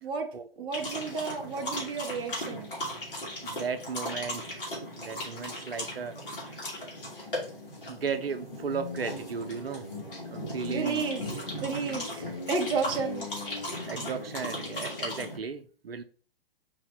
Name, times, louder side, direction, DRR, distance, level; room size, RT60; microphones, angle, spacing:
voice 1, 0.6-2.7 10.7-11.2 11.6-13.3 13.7-13.8, right 5 dB, 15° right, 3 dB, 0.6 m, -32 dB
sound 1, 0.7-15.4, left 1 dB, 60° left, 2.3 m, -37 dB
voice 2, 3.4-4.7 5.0-6.7 7.9-9.9 10.3-11.0 13.8-16.0, right 6 dB, 80° right, 10 dB, 0.6 m, -36 dB
4.9 x 2.7 x 3.7 m, 0.40 s
figure-of-eight pair, 120°, 29 cm